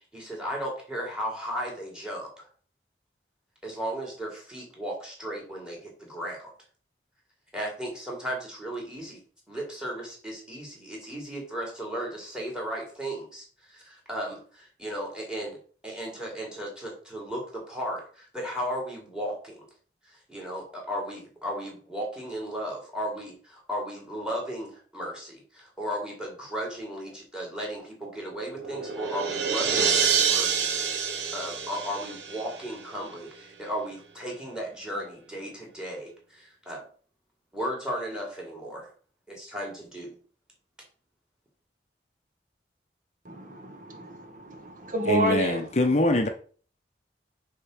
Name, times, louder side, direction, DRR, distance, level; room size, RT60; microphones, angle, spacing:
voice 1, 0.1-2.5 3.6-6.4 7.5-9.2 9.5-15.6 15.8-19.6 20.0-30.7 31.3-36.8 37.5-38.9 39.3-40.1, equal, 5° right, -1 dB, 2.7 m, -35 dB
sound 1, 28.3-32.9, right 6 dB, 85° right, 1.4 m, -27 dB
voice 2, 43.2-45.7, right 1 dB, 45° right, 4 dB, 1.1 m, -30 dB
voice 3, 45.1-46.3, left 2 dB, 40° left, 5 dB, 0.7 m, -23 dB
6.7 x 3.7 x 6.1 m, 0.43 s
head